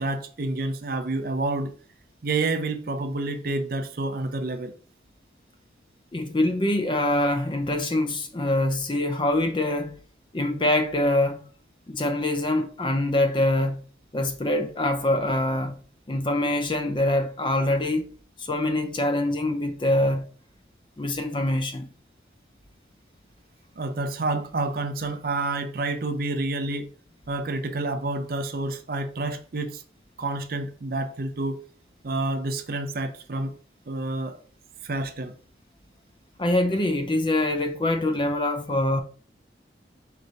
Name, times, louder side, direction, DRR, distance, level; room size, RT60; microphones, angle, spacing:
voice 1, 0.0-1.7 2.2-4.7 23.8-26.9 27.3-29.8 30.2-31.6 32.0-33.5 33.9-34.4 34.8-35.3, right 2 dB, 50° right, 0.5 m, -29 dB
voice 2, 6.1-10.0 10.3-11.4 11.9-13.8 14.1-15.8 16.1-18.1 18.4-20.2 21.0-21.9 36.4-39.0, left 1 dB, 25° left, 0.5 m, -24 dB
4.7 x 2.7 x 4.0 m
head